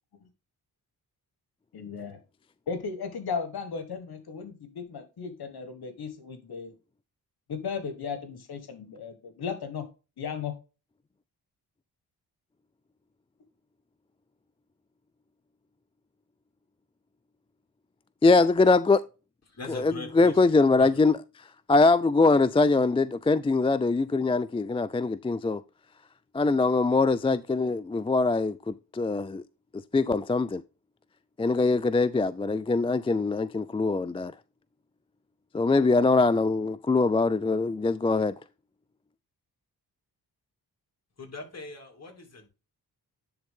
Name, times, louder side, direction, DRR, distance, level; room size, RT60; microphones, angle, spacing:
voice 1, 1.7-2.2 2.7-6.7 7.5-9.9 10.2-10.5, left 6 dB, 70° left, 1.6 m, -35 dB
voice 2, 18.2-19.0 19.7-21.2 21.7-25.6 26.3-29.4 29.9-30.6 31.4-34.3 35.5-38.3, left 3 dB, 15° left, 0.4 m, -23 dB
voice 3, 19.5-20.4 20.7-21.0 41.2-42.5, left 2 dB, 40° left, 2.8 m, -42 dB
10.0 x 3.8 x 3.7 m
cardioid pair, 70°, 39 cm